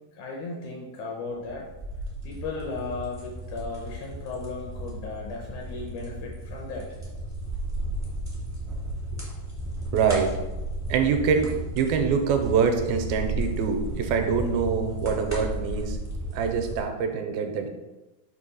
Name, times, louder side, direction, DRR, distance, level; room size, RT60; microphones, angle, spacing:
voice 1, 0.0-1.7 2.2-7.0, left 3 dB, 75° left, -1 dB, 1.8 m, -36 dB
sound 1, 1.4-16.8, right 1 dB, 15° right, 0.5 m, -34 dB
voice 2, 9.9-10.4 10.9-16.0 16.3-17.7, right 6 dB, 85° right, 5 dB, 2.3 m, -25 dB
6.4 x 3.1 x 5.4 m, 1.1 s
omnidirectional pair, 4.3 m